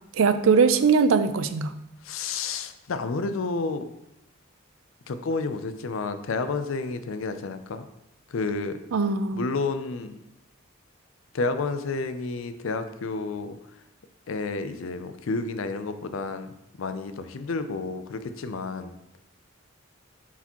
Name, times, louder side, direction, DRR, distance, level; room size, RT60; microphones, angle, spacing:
voice 1, 0.1-1.7 8.9-9.5, right 5 dB, 80° right, 11 dB, 0.4 m, -21 dB
voice 2, 2.0-3.9 5.1-7.8 8.3-8.8 9.3-10.2 11.3-13.6 14.3-16.5 16.8-19.0, left 3 dB, 80° left, 10 dB, 0.5 m, -30 dB
6.9 x 4.7 x 2.9 m, 0.85 s
head